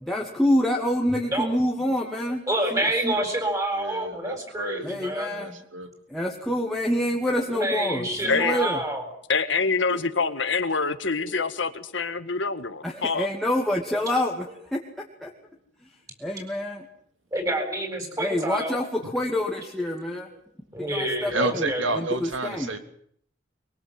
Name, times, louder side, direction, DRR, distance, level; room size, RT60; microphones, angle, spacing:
voice 1, 0.0-2.4 2.7-3.1 4.8-5.6 6.1-8.8 9.9-10.0 12.8-14.5 14.7-14.8 15.2-15.3 16.2-16.9 18.2-20.3 20.9-22.7, left 1 dB, ahead, -2 dB, 2.4 m, -27 dB
voice 2, 1.1-1.5 2.5-5.3 7.4-9.0 11.2-11.3 13.9-14.0 17.3-18.8 20.7-21.9, right 1 dB, 20° right, 5 dB, 8.0 m, -28 dB
voice 3, 3.8-4.9 5.3-5.9 21.3-22.8, right 2 dB, 80° right, 8 dB, 3.2 m, -30 dB
voice 4, 8.3-8.6 9.3-13.3, left 4 dB, 70° left, 10 dB, 1.8 m, -25 dB
23.5 x 23.5 x 7.7 m, 0.64 s
head